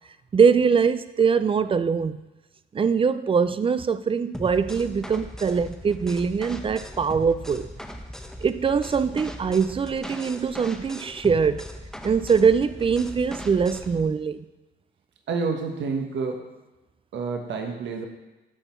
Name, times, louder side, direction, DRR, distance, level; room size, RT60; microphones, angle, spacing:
voice 1, 0.3-2.2 2.7-7.7 8.4-11.7 12.0-14.4, right 6 dB, 25° right, 14 dB, 0.4 m, -22 dB
sound 1, 4.3-14.0, equal, 5° left, 0.8 m, -39 dB
voice 2, 15.3-16.4 17.1-18.0, right 4 dB, 65° right, 3 dB, 1.2 m, -28 dB
13.0 x 4.3 x 4.5 m, 1.1 s
cardioid pair, 90°, 20 cm